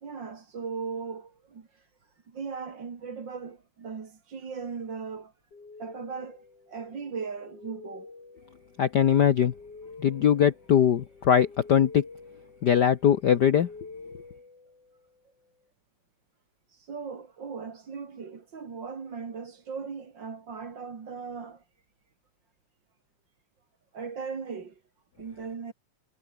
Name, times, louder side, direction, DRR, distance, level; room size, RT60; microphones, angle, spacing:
voice 1, 0.0-1.9 2.3-5.3 5.8-8.1 16.7-21.6 23.9-24.8 25.2-25.7, right 5 dB, 40° right, 2.9 m, -38 dB
sound 1, 5.5-15.2, left 3 dB, 50° left, 6.9 m, -48 dB
voice 2, 8.8-9.5 10.0-12.0 12.6-13.7, left 8 dB, 80° left, 0.9 m, -21 dB
omnidirectional pair, 3.4 m